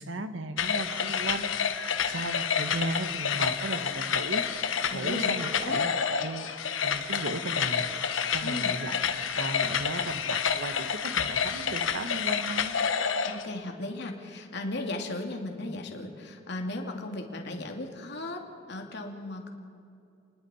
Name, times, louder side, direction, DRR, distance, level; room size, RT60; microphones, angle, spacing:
voice 1, 0.0-4.4 4.9-6.5 6.8-7.9 8.3-12.7, right 2 dB, 75° right, 9 dB, 1.4 m, -36 dB
sound 1, 0.6-13.4, left 7 dB, 90° left, 1.1 m, -29 dB
voice 2, 4.9-5.3 5.6-5.8 8.4-8.7 13.2-19.5, left 2 dB, 60° left, 2 dB, 2.5 m, -36 dB
30.0 x 20.5 x 4.4 m, 2.6 s
head